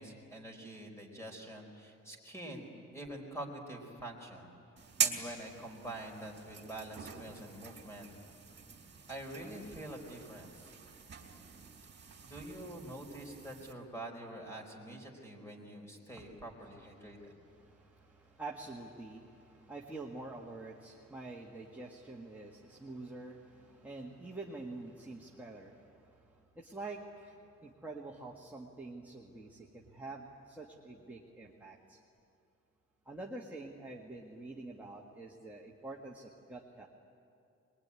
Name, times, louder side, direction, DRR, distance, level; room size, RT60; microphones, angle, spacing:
voice 1, 0.0-4.5 5.0-8.1 8.5-8.6 9.1-10.7 12.2-17.3, right 1 dB, 10° left, 2 dB, 4.5 m, -46 dB
sound 1, 4.8-13.7, right 6 dB, 40° right, 3.6 m, -42 dB
voice 2, 17.0-32.0 33.0-36.9, right 2 dB, 5° right, -2 dB, 1.7 m, -47 dB
24.0 x 22.0 x 9.8 m, 2.6 s
wide cardioid pair, 145°, 29 cm